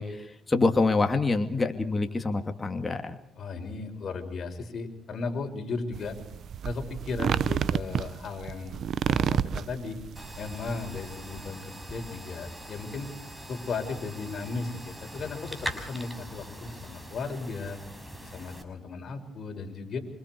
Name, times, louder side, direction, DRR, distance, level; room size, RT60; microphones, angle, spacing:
voice 1, 0.0-3.2, left 3 dB, 20° left, 5 dB, 2.6 m, -26 dB
voice 2, 3.3-6.1 6.6-8.8 9.1-10.0 10.4-13.1 13.5-17.8 18.2-20.0, left 4 dB, 55° left, 3 dB, 6.3 m, -36 dB
sound 1, 5.9-11.5, right 8 dB, 65° right, 0.9 m, -30 dB
sound 2, 10.2-18.6, equal, 5° right, 5.4 m, -42 dB
27.5 x 26.5 x 4.8 m, 0.73 s
cardioid pair, 90°, 0 cm